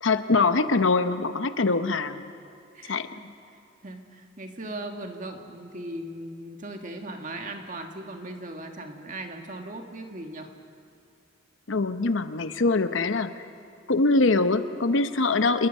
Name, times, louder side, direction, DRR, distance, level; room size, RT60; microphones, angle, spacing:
voice 1, 0.0-2.3 2.9-3.1 11.7-13.5 13.9-15.7, left 3 dB, 75° left, 10 dB, 0.9 m, -23 dB
voice 2, 2.7-3.3 3.8-10.5, right 1 dB, 40° right, 4 dB, 1.8 m, -38 dB
27.5 x 21.5 x 5.5 m, 2.5 s
head